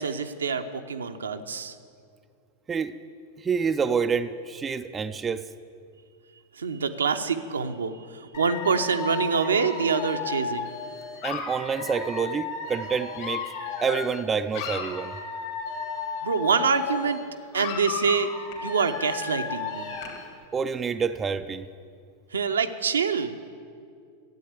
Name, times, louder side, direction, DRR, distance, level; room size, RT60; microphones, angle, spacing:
voice 1, 0.0-1.8 6.6-10.7 16.2-17.2 17.5-18.3 18.6-19.9 22.3-23.3, right 5 dB, 70° right, 8 dB, 0.7 m, -26 dB
voice 2, 3.4-5.4 11.2-13.5 13.8-15.2 20.5-21.7, right 6 dB, 20° right, 9 dB, 0.4 m, -27 dB
Dog / Alarm, 8.3-14.2 14.5-17.2 17.5-20.3, left 5 dB, 50° left, 2.4 m, -34 dB
13.5 x 8.5 x 8.2 m, 2.3 s
figure-of-eight pair, 90°, 0 cm